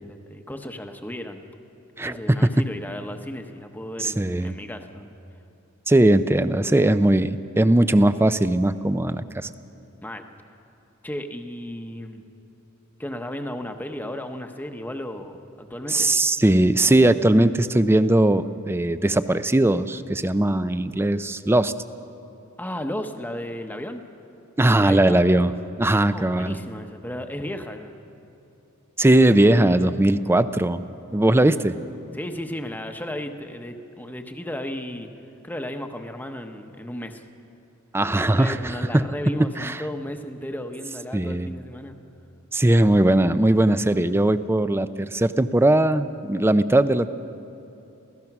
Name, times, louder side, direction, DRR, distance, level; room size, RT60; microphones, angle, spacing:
voice 1, 0.0-1.4 2.0-5.1 10.0-10.2 11.0-12.2 13.0-16.1 22.6-24.0 24.8-25.2 26.1-28.0 32.1-35.1 35.4-37.2 38.0-42.0, left 1 dB, 10° left, 6 dB, 0.9 m, -34 dB
voice 2, 2.0-2.5 4.0-4.5 5.9-9.5 15.9-21.7 24.6-25.5 25.8-26.6 29.0-30.8 31.1-31.8 37.9-39.1 39.6-39.8 41.1-41.5 42.5-47.1, right 1 dB, 10° right, 12 dB, 0.5 m, -19 dB
28.0 x 16.0 x 6.0 m, 2.8 s
head